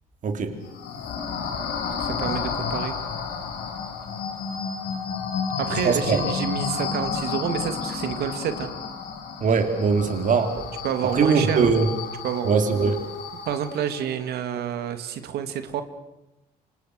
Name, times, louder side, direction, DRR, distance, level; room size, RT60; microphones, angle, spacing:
voice 1, 0.2-0.6 5.8-6.2 9.4-10.7 11.1-11.9 12.4-13.0, right 5 dB, 50° right, 6 dB, 3.9 m, -21 dB
sound 1, 0.6-14.0, left 6 dB, 80° left, 6.7 m, -31 dB
voice 2, 2.0-3.0 5.6-8.7 10.8-11.8 12.2-12.5 13.5-15.8, right 8 dB, 70° right, 9 dB, 2.4 m, -29 dB
28.5 x 26.0 x 6.6 m, 0.93 s
cardioid pair, 110°, 17 cm